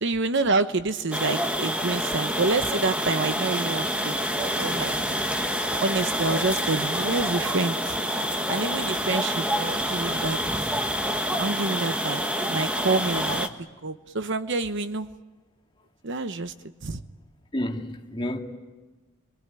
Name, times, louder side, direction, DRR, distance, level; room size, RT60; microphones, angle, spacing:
voice 1, 0.0-5.2 5.8-8.0 8.5-10.4 11.4-13.5 13.8-15.1 16.0-16.5 16.8-17.0, right 3 dB, 60° right, 1.0 m, -27 dB
sound 1, 1.1-13.5, equal, 5° right, 1.4 m, -27 dB
voice 2, 17.5-18.4, left 1 dB, 25° left, 2.5 m, -30 dB
27.5 x 22.5 x 9.0 m
head